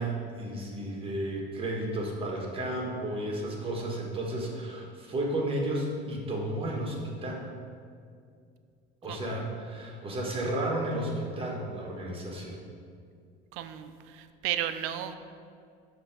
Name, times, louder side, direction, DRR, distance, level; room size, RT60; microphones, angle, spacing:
voice 1, 0.0-7.5 9.0-12.6, right 1 dB, 25° right, -1 dB, 1.4 m, -33 dB
voice 2, 13.5-13.9 14.2-15.1, right 11 dB, 80° right, 10 dB, 0.5 m, -33 dB
6.2 x 3.4 x 6.0 m, 2.3 s
supercardioid pair, 100°, 21 cm